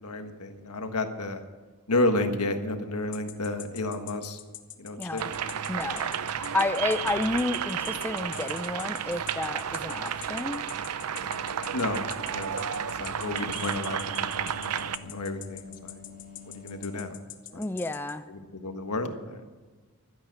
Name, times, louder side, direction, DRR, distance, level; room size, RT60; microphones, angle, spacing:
voice 1, 0.0-1.4 1.9-4.4 4.8-5.2 5.7-6.0 11.7-12.6 13.0-16.0 16.4-17.2 17.5-17.7 18.3-19.5, left 2 dB, 85° left, 6 dB, 1.5 m, -31 dB
sound 1, 3.1-18.1, left 13 dB, 60° left, 1.1 m, -43 dB
voice 2, 4.9-5.3 5.7-6.2 6.5-10.6 17.5-18.2, left 2 dB, 10° left, 10 dB, 0.4 m, -30 dB
sound 2, 5.2-15.0, right 8 dB, 80° right, 0.6 m, -32 dB
sound 3, 11.2-17.2, left 5 dB, 40° left, 1.6 m, -48 dB
12.0 x 10.5 x 8.1 m, 1.4 s
head